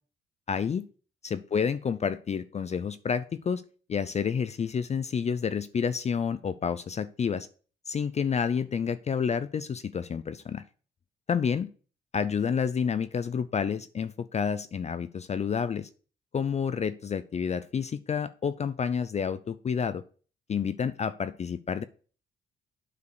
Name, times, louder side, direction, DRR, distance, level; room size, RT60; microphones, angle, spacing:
voice 1, 0.5-0.9 1.2-3.6 3.9-7.5 7.9-10.6 11.3-11.7 12.1-15.9 16.3-20.0 20.5-21.8, left 6 dB, 35° left, 13 dB, 0.5 m, -29 dB
8.4 x 4.8 x 4.8 m, 0.39 s
cardioid pair, 90°, 20 cm